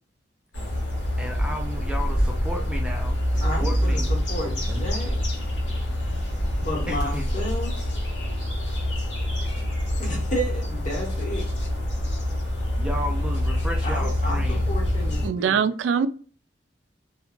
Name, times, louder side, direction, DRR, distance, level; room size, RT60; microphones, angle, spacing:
sound 1, 0.5-15.3, left 1 dB, 90° left, 1.1 m, -26 dB
voice 1, 1.2-4.1 4.7-4.9 6.9-7.3 12.8-14.6, equal, 5° right, 0.4 m, -34 dB
voice 2, 3.4-5.2 6.6-7.9 10.0-11.5 13.8-15.6, equal, 45° left, 1.1 m, -32 dB
voice 3, 15.2-16.1, right 7 dB, 90° right, 0.3 m, -22 dB
2.8 x 2.2 x 2.4 m
head